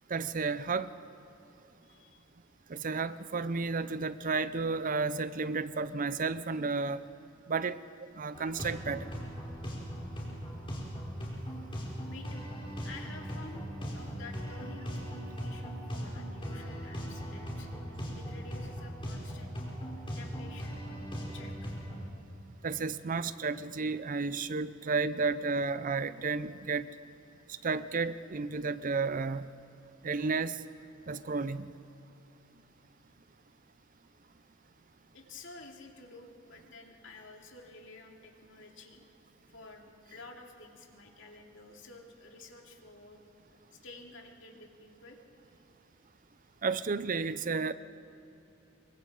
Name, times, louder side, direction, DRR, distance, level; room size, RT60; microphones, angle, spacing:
voice 1, 0.1-0.9 2.7-7.0 7.5-9.1 22.6-26.9 27.6-29.5 30.0-30.6 31.1-31.7 46.6-47.7, right 4 dB, 45° right, 14 dB, 0.6 m, -32 dB
voice 2, 1.5-2.3 10.2-10.7 11.6-13.7 13.9-17.7 18.2-19.6 20.1-21.8 35.1-39.0 39.5-43.2 43.7-45.2, left 3 dB, 70° left, 1 dB, 2.6 m, -51 dB
sound 1, 8.3-22.0, equal, 25° left, 4.7 m, -39 dB
27.0 x 24.0 x 4.9 m, 2.8 s
head